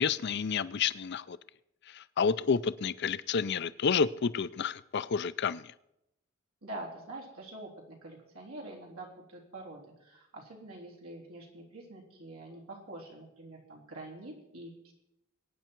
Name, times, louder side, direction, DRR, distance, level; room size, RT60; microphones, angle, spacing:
voice 1, 0.0-1.4 1.9-5.7, left 6 dB, 50° left, 17 dB, 0.5 m, -30 dB
voice 2, 6.6-14.9, right 2 dB, 85° right, -1 dB, 3.6 m, -46 dB
21.5 x 9.3 x 4.6 m, 0.85 s
head